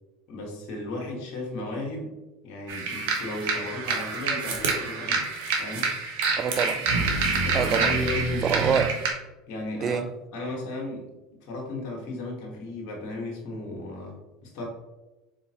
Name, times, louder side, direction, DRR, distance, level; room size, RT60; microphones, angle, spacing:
voice 1, 0.3-2.1 2.4-5.3 5.6-5.9 7.4-8.5 9.5-10.0 10.3-11.1 11.4-14.6, left 2 dB, 60° left, 1.3 m, -35 dB
sound 1, 2.7-9.1, right 4 dB, 75° right, 0.9 m, -27 dB
voice 2, 6.4-6.9 7.5-8.0 8.4-9.0 9.8-10.1, right 6 dB, 35° right, 0.3 m, -26 dB
4.1 x 3.6 x 2.8 m
hypercardioid pair, 85°, 0 cm